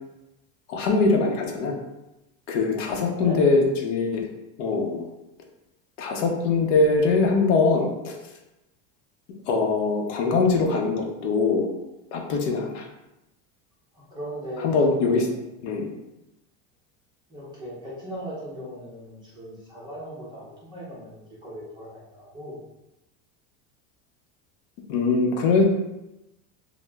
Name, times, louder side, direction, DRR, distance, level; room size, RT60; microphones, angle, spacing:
voice 1, 0.7-1.8 2.5-4.2 4.6-5.1 6.0-8.1 9.5-11.7 12.1-12.9 14.6-15.3 15.6-15.9 24.9-25.7, left 3 dB, 65° left, 1 dB, 0.7 m, -22 dB
voice 2, 2.7-3.4 13.9-15.4 17.3-22.6, equal, 10° right, -8 dB, 0.5 m, -39 dB
2.8 x 2.0 x 3.3 m, 0.93 s
supercardioid pair, 170°, 40 cm